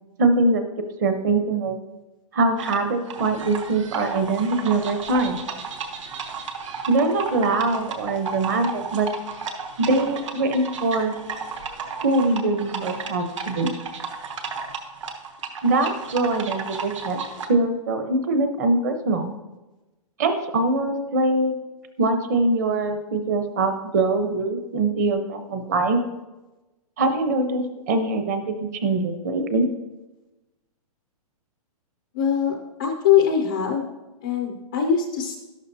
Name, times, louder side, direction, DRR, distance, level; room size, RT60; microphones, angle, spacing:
voice 1, 0.2-1.8 2.3-5.4 6.9-9.1 9.8-11.1 12.0-13.7 15.6-17.2 17.5-19.3 20.2-21.5 22.0-26.0 27.0-29.7, right 2 dB, 30° right, 7 dB, 0.9 m, -23 dB
sound 1, 2.6-17.5, right 5 dB, 55° right, 1.2 m, -33 dB
voice 2, 32.1-33.9 34.2-35.4, left 8 dB, 10° left, 2 dB, 0.3 m, -22 dB
12.5 x 11.5 x 2.7 m, 1.1 s
hypercardioid pair, 180°, 19 cm